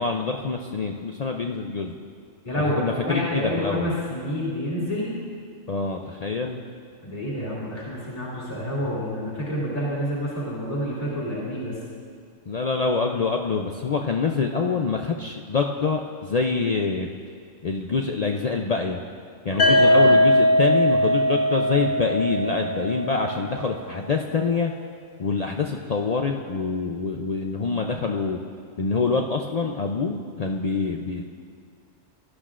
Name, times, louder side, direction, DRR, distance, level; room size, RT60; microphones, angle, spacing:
voice 1, 0.0-2.0 2.6-3.9 5.7-6.6 12.5-17.1 17.6-19.0 19.4-24.7 25.2-28.4 28.8-31.2, left 4 dB, 75° left, 2 dB, 0.3 m, -25 dB
voice 2, 2.4-5.1 7.0-11.8 19.5-20.2, equal, 30° left, -7 dB, 2.7 m, -28 dB
sound 1, 19.6-23.5, equal, 50° left, 1.1 m, -20 dB
17.5 x 12.0 x 2.5 m, 2.1 s
omnidirectional pair, 1.4 m